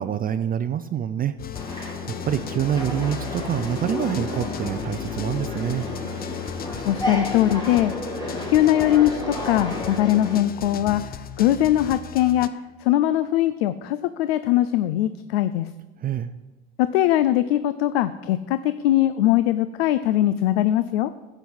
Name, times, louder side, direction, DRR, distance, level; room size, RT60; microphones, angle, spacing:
voice 1, 0.0-1.3 1.7-1.9 2.3-5.9 16.0-16.3, right 9 dB, 30° right, 11 dB, 0.4 m, -26 dB
sound 1, 1.4-12.5, left 9 dB, 30° left, 0.6 m, -36 dB
sound 2, 1.5-10.4, left 1 dB, 15° left, 3.6 m, -32 dB
voice 2, 6.8-8.0 8.5-15.7 16.8-21.1, left 13 dB, 80° left, 13 dB, 0.5 m, -21 dB
11.5 x 8.0 x 5.5 m, 1.2 s
hypercardioid pair, 85°, 30 cm